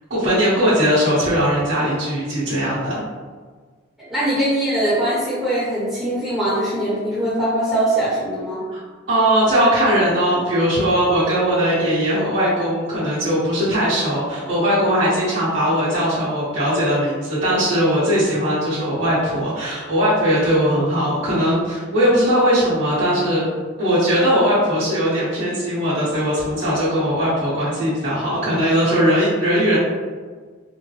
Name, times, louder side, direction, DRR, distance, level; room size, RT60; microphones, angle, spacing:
voice 1, 0.1-2.9 8.7-8.8 9.1-23.4 23.8-29.8, equal, 60° right, -14 dB, 1.4 m, -19 dB
voice 2, 4.0-8.6, right 1 dB, ahead, -11 dB, 1.0 m, -22 dB
3.6 x 2.2 x 3.3 m, 1.5 s
head